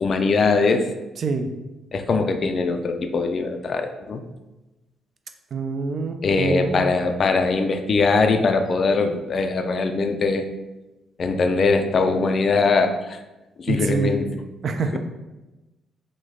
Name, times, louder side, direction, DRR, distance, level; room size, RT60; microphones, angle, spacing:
voice 1, 0.0-0.9 1.9-4.2 6.2-10.4 11.2-13.2 13.6-14.3, left 4 dB, 50° left, 7 dB, 0.3 m, -21 dB
voice 2, 1.2-1.5 5.5-6.9 13.7-14.1 14.6-15.0, right 4 dB, 55° right, 7 dB, 0.3 m, -25 dB
3.1 x 2.1 x 3.6 m, 1.1 s
cardioid pair, 90°, 0 cm